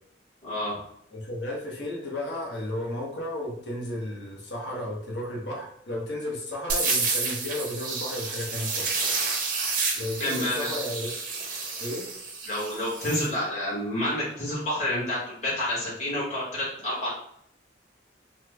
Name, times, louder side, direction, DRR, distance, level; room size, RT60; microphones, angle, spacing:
voice 1, 0.4-0.8 9.9-10.7 12.5-17.1, left 1 dB, 35° left, -7 dB, 1.4 m, -29 dB
voice 2, 1.1-8.9 10.0-11.1 11.8-12.1, left 1 dB, 65° left, -2 dB, 0.9 m, -33 dB
sound 1, 6.7-13.3, right 4 dB, 45° right, 0.6 m, -30 dB
3.1 x 2.1 x 3.3 m, 0.69 s
head